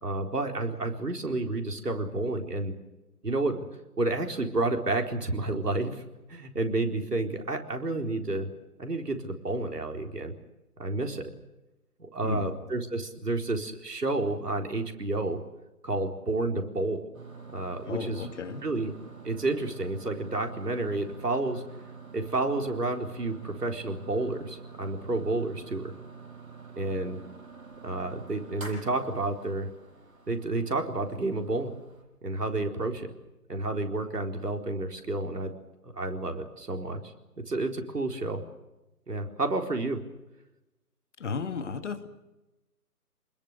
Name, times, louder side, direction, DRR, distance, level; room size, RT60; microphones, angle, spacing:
voice 1, 0.0-2.7 3.2-3.6 4.0-6.0 6.3-8.5 8.8-10.3 10.8-11.2 12.0-15.4 15.8-17.0 17.5-18.3 18.6-18.9 19.2-21.6 22.1-25.9 26.8-27.2 27.8-29.7 30.3-31.7 32.2-33.1 33.5-35.5 35.8-37.0 37.4-38.4 39.1-40.0, right 2 dB, 75° right, 4 dB, 4.4 m, -30 dB
voice 2, 12.2-12.6 17.8-18.7 41.2-42.1, left 5 dB, 45° left, 9 dB, 2.3 m, -34 dB
sound 1, 17.1-32.0, right 5 dB, 55° right, 7.6 m, -47 dB
28.5 x 21.0 x 6.7 m, 1.0 s
figure-of-eight pair, 145°, 48 cm